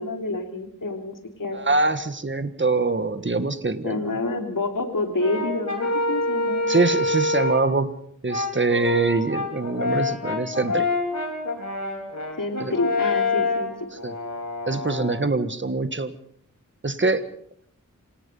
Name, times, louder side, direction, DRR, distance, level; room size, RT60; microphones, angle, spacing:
voice 1, 0.0-1.6 3.8-6.7 12.4-13.7, left 2 dB, 85° left, 5 dB, 3.1 m, -28 dB
voice 2, 1.5-4.0 6.7-7.9 8.2-10.9 12.6-12.7 14.0-14.1 14.7-16.1 16.8-17.2, right 3 dB, 35° right, 11 dB, 1.6 m, -24 dB
Brass instrument, 5.2-7.7 8.3-15.3, left 3 dB, 60° left, 4.5 m, -26 dB
27.0 x 18.5 x 5.5 m, 0.65 s
wide cardioid pair, 65°, 32 cm